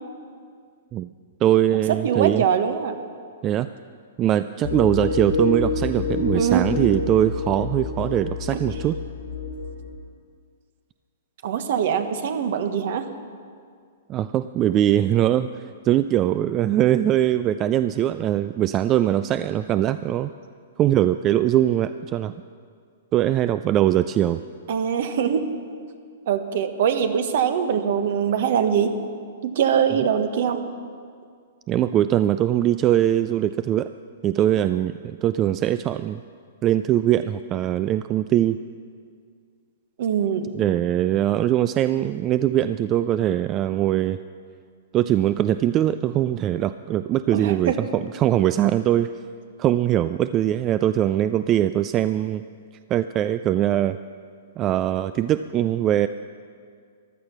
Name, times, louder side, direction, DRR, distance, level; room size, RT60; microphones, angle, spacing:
voice 1, 1.4-2.4 3.4-3.7 4.2-9.0 14.1-20.3 20.8-22.3 23.1-24.4 31.7-33.9 34.2-36.2 36.6-38.6 40.5-44.2 44.9-49.1 49.6-52.4 52.9-54.0 54.6-56.1, right 12 dB, 30° right, 12 dB, 0.3 m, -21 dB
voice 2, 2.0-3.0 6.3-6.6 11.4-13.1 24.7-25.4 26.3-29.0 29.4-30.7 40.0-40.5 47.3-47.8, right 8 dB, 60° right, 9 dB, 1.2 m, -23 dB
sound 1, 4.6-10.0, left 3 dB, 85° left, 2.4 m, -28 dB
15.0 x 11.5 x 6.0 m, 2.1 s
hypercardioid pair, 125°, 0 cm